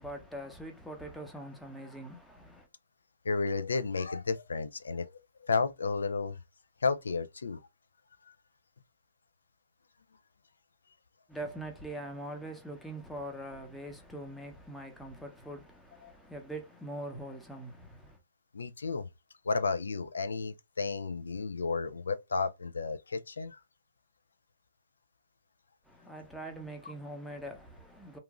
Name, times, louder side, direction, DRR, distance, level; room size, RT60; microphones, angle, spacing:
voice 1, 0.0-2.7 11.3-18.2 25.9-28.2, right 1 dB, ahead, 0.6 m, -43 dB
voice 2, 3.2-6.4 6.8-7.6 18.5-19.1 19.4-23.6, left 4 dB, 80° left, 0.3 m, -32 dB
2.9 x 2.5 x 2.4 m
hypercardioid pair, 140°, 0 cm